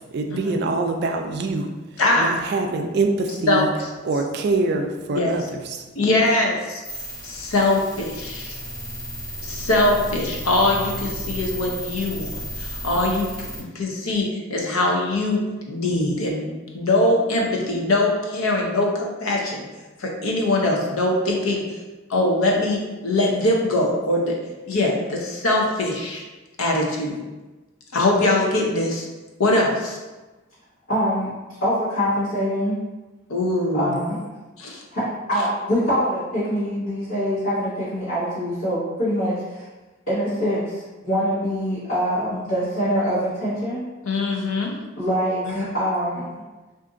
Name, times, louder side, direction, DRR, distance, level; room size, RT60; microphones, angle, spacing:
voice 1, 0.0-3.7 4.0-5.8, right 3 dB, 50° right, 4 dB, 0.3 m, -25 dB
voice 2, 2.0-2.4 3.5-3.6 5.1-5.3 6.0-6.8 7.2-8.6 9.4-15.4 15.7-19.6 20.0-21.6 22.1-24.4 24.7-26.2 26.6-27.2 27.9-29.1 29.4-30.0 33.3-33.9 34.6-34.8 44.0-44.7, left 2 dB, 90° left, 0 dB, 0.6 m, -22 dB
sound 1, 6.8-13.6, equal, 45° left, 1.0 m, -33 dB
voice 3, 30.9-31.3 31.6-32.8 33.7-34.2 34.9-35.0 35.3-39.6 40.1-43.8 45.0-46.2, equal, 65° left, -14 dB, 1.1 m, -24 dB
2.5 x 2.5 x 3.7 m, 1.2 s
head